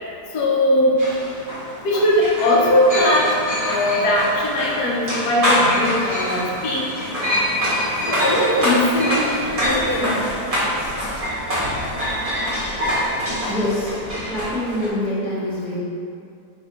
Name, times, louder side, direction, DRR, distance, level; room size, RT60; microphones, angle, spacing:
voice 1, 0.3-0.9 1.8-3.3 3.6-6.8 8.1-9.4 9.6-10.2, left 1 dB, 75° left, -3 dB, 1.2 m, -19 dB
sound 1, 1.0-14.9, equal, 25° right, 0.9 m, -24 dB
voice 2, 13.5-14.0 14.3-15.8, left 1 dB, ahead, -9 dB, 0.7 m, -25 dB
4.7 x 3.2 x 2.9 m, 2.4 s
omnidirectional pair, 1.7 m